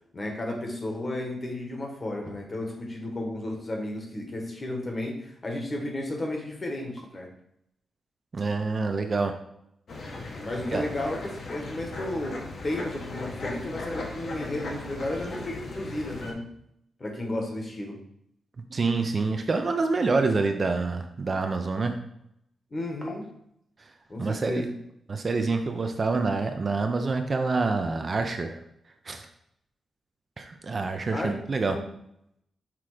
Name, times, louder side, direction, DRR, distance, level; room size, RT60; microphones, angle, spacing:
voice 1, 0.1-7.3 10.4-16.5 17.0-18.0 22.7-23.3 24.1-24.8 31.1-31.3 31.7-31.9, left 1 dB, 30° left, 1 dB, 1.3 m, -33 dB
voice 2, 8.3-9.3 10.7-10.8 18.7-21.9 24.2-24.7 25.1-28.6 29.1-29.3 30.4-31.8, right 3 dB, 35° right, 5 dB, 0.5 m, -27 dB
sound 1, 9.9-16.3, left 2 dB, 50° left, 1.2 m, -37 dB
5.9 x 3.6 x 4.9 m, 0.75 s
wide cardioid pair, 145°, 0 cm